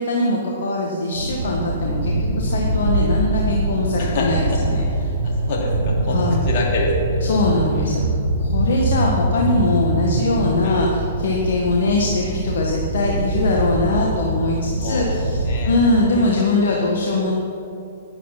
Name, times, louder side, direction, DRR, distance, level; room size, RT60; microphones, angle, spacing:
voice 1, 0.0-5.1 6.1-6.4 7.2-8.1 8.4-17.3, left 2 dB, 60° left, -1 dB, 1.5 m, -21 dB
sound 1, 1.1-15.6, right 1 dB, 80° right, 1.8 m, -23 dB
voice 2, 4.0-4.6 5.2-6.2 6.5-7.3 7.7-7.9 8.7-8.8 10.6-10.8 14.8-15.1 15.4-15.7 16.1-16.2, left 2 dB, 45° left, -3 dB, 3.2 m, -26 dB
11.0 x 10.5 x 5.9 m, 2.9 s
figure-of-eight pair, 115°, 0 cm